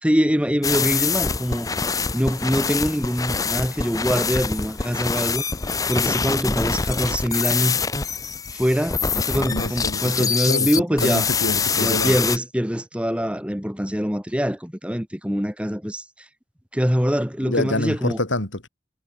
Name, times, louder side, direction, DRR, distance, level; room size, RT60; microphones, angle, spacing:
voice 1, 0.0-1.7 2.1-5.4 5.9-7.8 8.5-9.0 9.2-11.3 11.8-16.0 16.7-18.2, equal, 5° right, 4.3 m, -23 dB
sound 1, 0.6-12.4, left 5 dB, 20° left, 0.6 m, -25 dB
voice 2, 9.1-10.7 11.0-12.2 17.4-18.7, left 1 dB, 85° left, 7.1 m, -27 dB
head